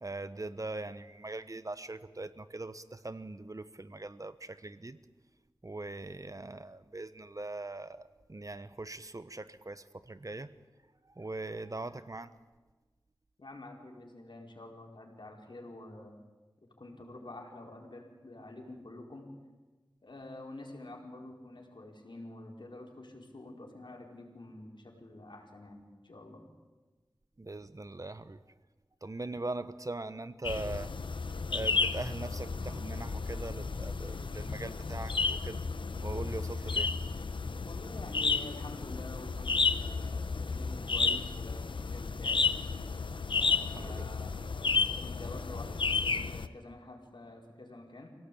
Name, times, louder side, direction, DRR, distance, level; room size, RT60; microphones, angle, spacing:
voice 1, 0.0-5.0 5.6-10.5 11.0-12.3 27.4-28.4 29.0-30.9 31.5-35.6 36.0-37.0 43.7-44.0, right 2 dB, 45° right, 1.1 m, -41 dB
voice 2, 13.4-16.2 16.8-19.3 20.0-26.5 37.6-42.5 43.3-44.6 45.0-48.1, left 2 dB, 75° left, 4.9 m, -48 dB
sound 1, 30.4-46.5, left 4 dB, 90° left, 0.8 m, -32 dB
26.0 x 17.5 x 8.6 m
wide cardioid pair, 40°, 8 cm